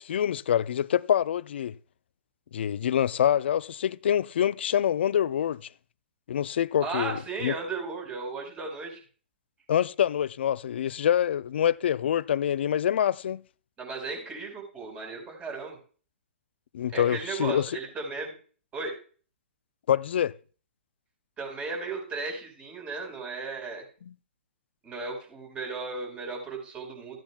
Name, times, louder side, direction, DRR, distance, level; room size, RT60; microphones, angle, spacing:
voice 1, 0.0-1.7 2.5-5.6 6.3-7.5 9.7-13.4 16.7-17.7 19.9-20.3, left 9 dB, 65° left, 0.4 m, -26 dB
voice 2, 6.8-9.0 13.8-15.8 16.9-18.4 18.7-19.0 21.4-23.8 24.8-27.2, right 4 dB, 20° right, 4.6 m, -35 dB
15.0 x 9.1 x 2.3 m
hypercardioid pair, 125°, 6 cm